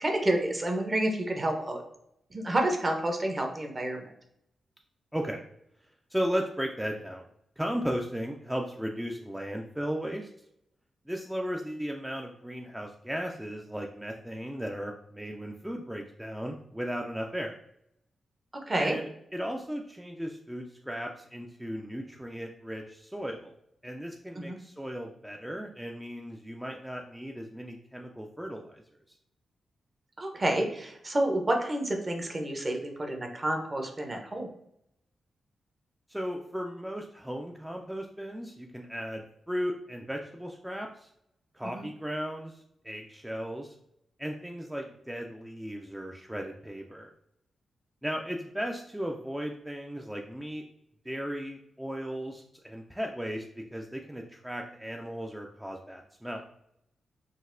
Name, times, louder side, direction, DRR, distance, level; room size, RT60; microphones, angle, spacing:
voice 1, 0.0-1.8 2.3-4.1 18.5-19.0 24.4-24.6 30.2-34.5 41.7-41.9, right 1 dB, 35° right, 3 dB, 0.7 m, -29 dB
voice 2, 5.1-5.4 6.1-7.2 7.6-10.3 11.1-17.6 18.8-23.5 23.8-28.8 36.1-41.1 41.5-43.8 44.2-47.1 48.0-50.6 51.1-56.4, equal, 5° right, 1 dB, 0.3 m, -36 dB
3.9 x 2.0 x 2.5 m, 0.74 s
supercardioid pair, 50°, 0 cm